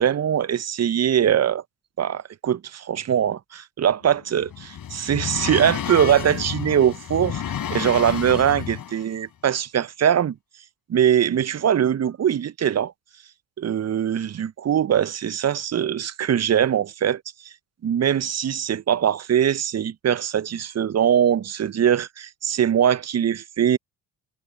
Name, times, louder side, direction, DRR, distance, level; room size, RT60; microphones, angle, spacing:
voice 1, 0.0-1.6 2.0-7.4 7.7-10.4 10.9-12.9 13.6-17.5 17.8-23.8, right 9 dB, 35° right, 1.1 m, -22 dB
sound 1, 4.0-9.1, left 9 dB, 50° left, 4.4 m, -31 dB
figure-of-eight pair, 45°, 43 cm